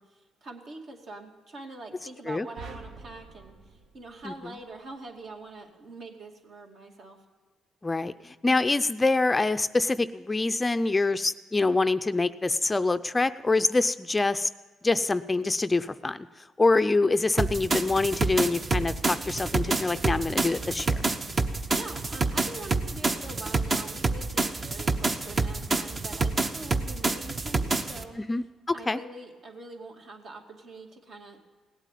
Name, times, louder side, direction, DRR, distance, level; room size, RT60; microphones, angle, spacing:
voice 1, 0.0-7.2 21.5-28.2 28.7-31.4, right 2 dB, 60° right, 1 dB, 2.4 m, -44 dB
sound 1, 2.6-5.0, right 3 dB, 75° right, 1.2 m, -46 dB
voice 2, 7.8-14.5 14.8-16.3 16.6-21.1 28.2-29.0, left 3 dB, 20° left, 12 dB, 0.4 m, -25 dB
sound 2, 17.4-28.0, right 3 dB, 35° right, 1.0 m, -28 dB
17.5 x 8.2 x 9.2 m, 1.4 s
cardioid pair, 90°, 0 cm